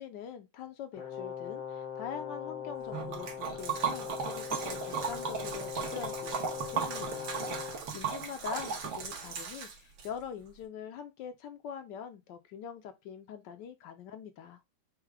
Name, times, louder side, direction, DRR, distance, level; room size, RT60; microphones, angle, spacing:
voice 1, 0.0-14.6, left 8 dB, 75° left, 1.1 m, -44 dB
Brass instrument, 0.9-7.8, left 8 dB, 55° left, 0.9 m, -40 dB
Liquid, 2.9-10.1, right 6 dB, 75° right, 1.8 m, -36 dB
4.6 x 2.1 x 4.6 m
omnidirectional pair, 2.2 m